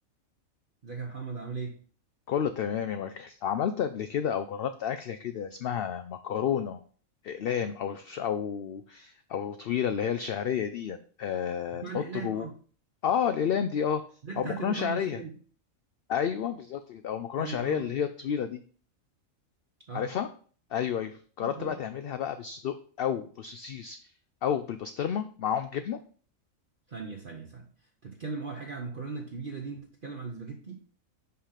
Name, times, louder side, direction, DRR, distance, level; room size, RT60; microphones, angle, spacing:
voice 1, 0.8-1.8 11.8-12.5 14.2-15.4 17.4-17.9 19.9-20.1 21.4-21.8 26.9-27.7 28.0-30.8, right 5 dB, 45° right, 1 dB, 1.0 m, -38 dB
voice 2, 2.3-6.8 7.2-12.5 13.0-14.0 14.4-15.2 16.1-18.6 19.9-20.3 20.7-24.0 24.4-26.0, left 8 dB, 65° left, 9 dB, 0.6 m, -31 dB
5.7 x 5.0 x 5.7 m, 0.43 s
omnidirectional pair, 1.4 m